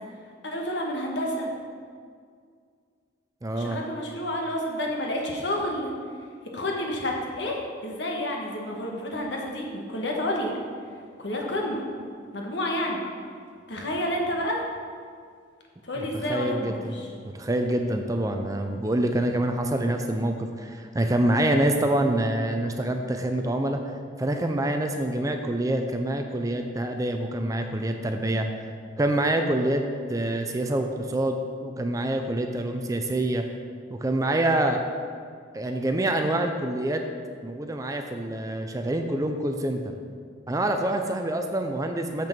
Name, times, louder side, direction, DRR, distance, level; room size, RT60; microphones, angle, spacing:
voice 1, 0.4-1.5 3.6-5.9 6.5-10.6 11.2-11.8 12.3-13.0 13.7-14.6 15.8-17.1, left 1 dB, 65° left, 0 dB, 1.4 m, -29 dB
voice 2, 3.4-3.8 16.3-16.9 17.2-23.8 24.2-28.5 29.0-29.8 30.1-33.5 33.9-34.8 35.5-37.0 37.4-39.9 40.5-42.3, right 1 dB, 15° right, 5 dB, 0.4 m, -26 dB
6.8 x 6.2 x 5.9 m, 2.1 s
head